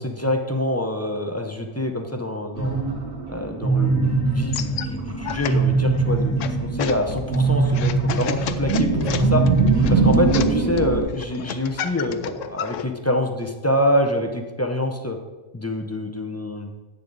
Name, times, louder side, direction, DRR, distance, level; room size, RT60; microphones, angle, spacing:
voice 1, 0.0-2.8 3.3-9.4 9.9-15.2 15.5-16.7, left 1 dB, 20° left, 4 dB, 0.4 m, -26 dB
sound 1, 2.6-11.0, right 4 dB, 70° right, 2.2 m, -21 dB
sound 2, 4.3-12.9, left 8 dB, 70° left, 0.9 m, -33 dB
10.0 x 8.5 x 4.0 m, 1.2 s
omnidirectional pair, 1.5 m